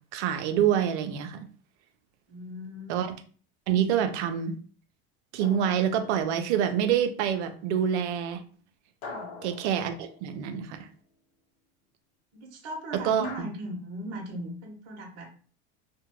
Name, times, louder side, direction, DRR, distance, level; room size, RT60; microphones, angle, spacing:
voice 1, 0.1-1.5 2.9-3.2 3.7-4.6 5.3-8.4 9.4-10.9 12.9-13.5, right 9 dB, 85° right, 8 dB, 0.6 m, -26 dB
voice 2, 2.3-2.9 9.0-9.3 12.3-15.3, right 1 dB, 50° right, 0 dB, 0.9 m, -38 dB
sound 1, 5.4-6.6 9.0-10.7 13.2-13.4, left 4 dB, 85° left, 0.9 m, -44 dB
2.6 x 2.1 x 3.0 m, 0.42 s
supercardioid pair, 110°, 33 cm